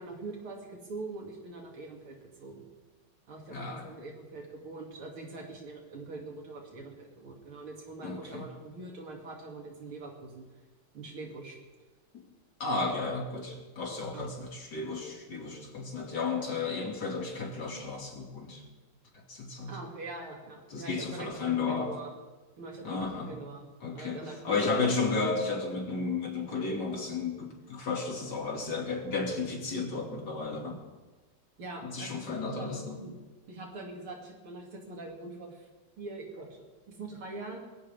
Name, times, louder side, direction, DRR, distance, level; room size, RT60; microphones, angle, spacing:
voice 1, 0.0-2.7 3.3-10.4 10.9-11.6 14.1-14.3 19.7-22.1 22.6-23.7 23.9-24.9 31.6-32.3 32.6-33.1 33.5-35.7 36.0-37.7, right 3 dB, 85° right, 0 dB, 3.7 m, -43 dB
voice 2, 3.5-3.9 8.0-8.5 12.1-12.2 12.6-18.6 19.1-19.8 20.7-22.0 22.8-23.3 23.8-30.8 31.8-33.0, left 4 dB, 55° left, 0 dB, 3.2 m, -33 dB
22.0 x 16.0 x 3.6 m, 1.2 s
omnidirectional pair, 2.3 m